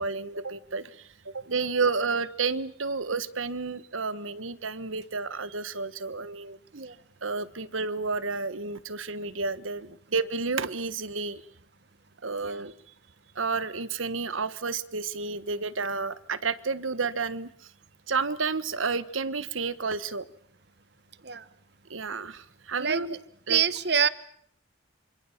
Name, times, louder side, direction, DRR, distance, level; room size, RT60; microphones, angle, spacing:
voice 1, 0.0-6.6 7.2-11.4 12.2-12.7 13.3-17.5 18.1-20.3 21.9-23.1 23.5-23.6, right 4 dB, 85° right, 16 dB, 1.4 m, -31 dB
voice 2, 23.5-24.1, right 7 dB, 55° right, 16 dB, 1.3 m, -25 dB
27.0 x 25.5 x 7.3 m, 0.64 s
head